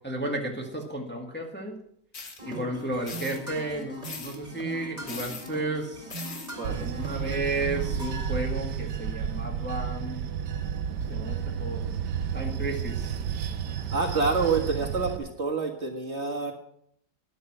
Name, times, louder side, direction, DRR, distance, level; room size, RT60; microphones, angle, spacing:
voice 1, 0.0-1.8 2.4-6.1 6.7-10.2 11.1-11.8 12.3-13.2, right 2 dB, 5° left, 0 dB, 1.6 m, -33 dB
sound 1, 2.1-2.4 3.1-3.4 4.0-4.4 5.1-5.5 6.1-6.5, left 4 dB, 60° left, 2.3 m, -39 dB
sound 2, 2.4-8.4, right 1 dB, 25° right, 3.4 m, -40 dB
Bell / Train, 6.6-15.2, right 8 dB, 85° right, 1.5 m, -31 dB
voice 2, 13.9-16.5, right 4 dB, 40° right, 2 dB, 2.0 m, -27 dB
12.5 x 10.5 x 6.1 m, 0.70 s
omnidirectional pair, 1.8 m